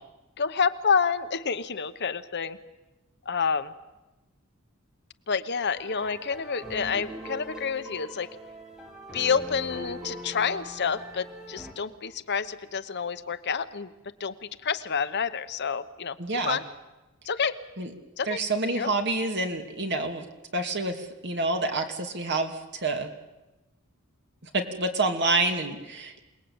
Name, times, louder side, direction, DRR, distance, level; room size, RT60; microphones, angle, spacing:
voice 1, 0.4-2.6 3.3-3.7 5.3-8.3 9.1-13.9 14.2-14.3 14.6-16.2 16.4-16.6 17.3-17.6 18.2-18.4 18.8-18.9, left 6 dB, 50° left, 11 dB, 1.0 m, -28 dB
sound 1, 5.7-11.7, right 1 dB, 5° right, 3.7 m, -42 dB
voice 2, 16.2-16.6 17.8-17.9 18.2-20.2 20.5-23.1 24.5-26.2, right 2 dB, 55° right, 5 dB, 2.7 m, -28 dB
27.5 x 19.5 x 8.8 m, 1.1 s
head